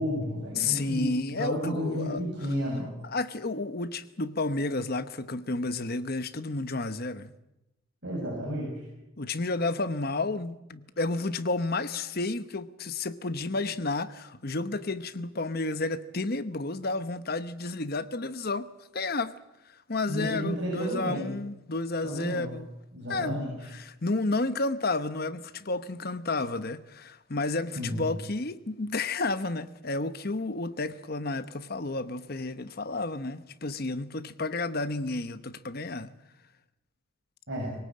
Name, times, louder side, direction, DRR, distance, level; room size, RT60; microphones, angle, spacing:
voice 1, 0.0-1.0 1.3-2.9 8.0-8.8 20.1-21.3 22.0-22.6 22.9-23.6 27.8-28.1 37.5-37.7, equal, 55° right, 7.0 m, -32 dB
voice 2, 0.6-2.2 3.0-7.3 9.2-19.3 19.9-22.7 23.1-23.3 23.7-36.1, left 3 dB, 45° left, 1.0 m, -31 dB
22.5 x 18.5 x 8.8 m
head